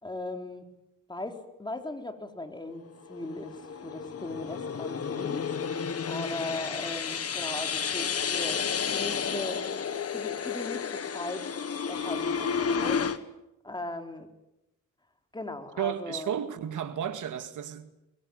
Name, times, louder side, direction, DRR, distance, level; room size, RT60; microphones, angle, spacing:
voice 1, 0.0-0.7 1.1-5.5 6.0-8.6 8.9-9.7 10.1-11.6 11.9-13.1 13.6-14.3 15.3-16.3, left 2 dB, 15° left, 3.9 m, -38 dB
sound 1, 3.1-13.2, left 6 dB, 50° left, 1.7 m, -31 dB
voice 2, 15.8-17.9, right 9 dB, 90° right, 2.2 m, -33 dB
23.5 x 22.0 x 9.2 m
cardioid pair, 90°, 30 cm